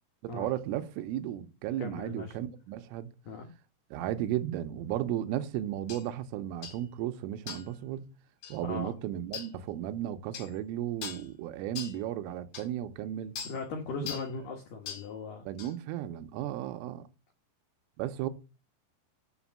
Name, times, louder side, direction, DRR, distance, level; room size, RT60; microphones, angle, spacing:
voice 1, 0.2-3.1 3.9-8.1 8.5-13.3 13.9-14.1 15.5-17.0 18.0-18.3, right 12 dB, 85° right, 3.2 m, -34 dB
voice 2, 1.8-2.4 3.2-3.5 8.6-8.9 13.4-15.5, left 4 dB, 80° left, 1.9 m, -38 dB
sound 1, 5.9-6.0 6.6-6.8 7.5-7.8 8.4-8.6 9.3-9.5 10.3-10.5 11.0-11.3 11.8-12.0 12.5-12.7 13.4-13.6 14.1-14.3 14.9-15.1 15.6-15.7, left 7 dB, 55° left, 2.8 m, -40 dB
7.1 x 5.9 x 7.2 m
omnidirectional pair, 5.8 m